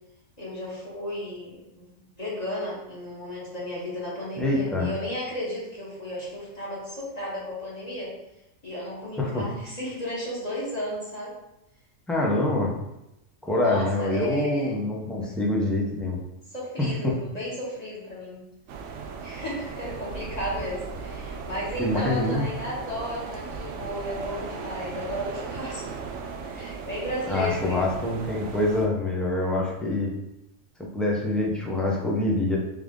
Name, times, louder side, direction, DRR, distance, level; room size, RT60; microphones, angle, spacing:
voice 1, 0.4-8.1 8.6-11.3 13.6-14.8 15.2-15.3 16.5-18.4 19.2-26.0 26.5-28.0, left 1 dB, 30° left, -7 dB, 1.4 m, -34 dB
voice 2, 4.4-4.9 9.2-9.4 12.1-12.7 13.4-16.2 16.8-17.1 21.8-22.5 27.3-30.1 30.8-32.6, left 2 dB, ahead, -2 dB, 0.4 m, -25 dB
sound 1, 18.7-28.9, right 5 dB, 70° right, 0.8 m, -37 dB
3.6 x 3.5 x 3.6 m, 0.87 s
omnidirectional pair, 1.4 m